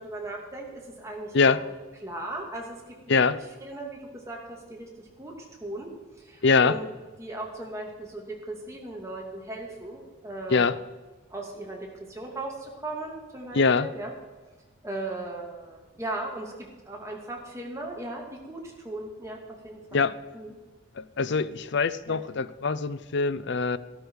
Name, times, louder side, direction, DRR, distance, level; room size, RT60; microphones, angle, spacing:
voice 1, 0.0-1.5 2.0-3.2 3.6-5.9 6.2-6.9 7.2-10.7 11.3-14.1 14.8-20.1 20.3-20.5 22.1-22.2, right 2 dB, 15° right, -1 dB, 2.4 m, -37 dB
voice 2, 6.4-6.8 10.5-10.8 13.5-13.9 19.9-20.2 21.0-23.8, left 4 dB, 55° left, 16 dB, 0.5 m, -23 dB
13.0 x 12.5 x 4.8 m, 1.2 s
head